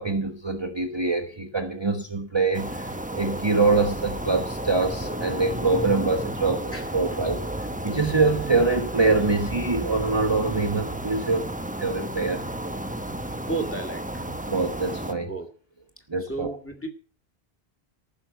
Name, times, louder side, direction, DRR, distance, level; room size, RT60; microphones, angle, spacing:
voice 1, 0.0-11.5 11.8-12.4 14.5-15.3 16.1-16.6, right 3 dB, 25° right, 4 dB, 1.2 m, -24 dB
sound 1, 2.5-15.1, right 1 dB, 10° right, 0.8 m, -32 dB
voice 2, 13.2-14.3 15.2-15.5 16.3-16.9, right 2 dB, 15° left, 5 dB, 2.2 m, -33 dB
14.5 x 6.3 x 8.0 m, 0.41 s
omnidirectional pair, 1.0 m